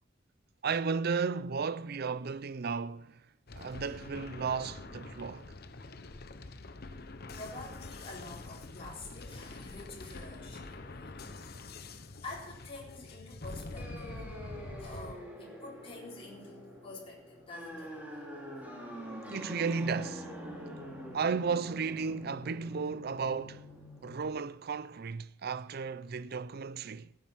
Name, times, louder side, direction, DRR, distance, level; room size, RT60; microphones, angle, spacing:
voice 1, 0.6-3.2 3.5-5.5 19.1-20.3 21.1-23.6 24.0-27.1, right 5 dB, 55° right, 0.5 m, -34 dB
sound 1, 3.5-15.2, left 2 dB, 55° left, 1.0 m, -45 dB
voice 2, 7.3-11.8 12.2-14.2 14.8-18.0, left 2 dB, 30° left, 4.2 m, -47 dB
sound 2, 13.8-24.3, equal, 10° right, 3.0 m, -45 dB
15.5 x 9.6 x 5.8 m
head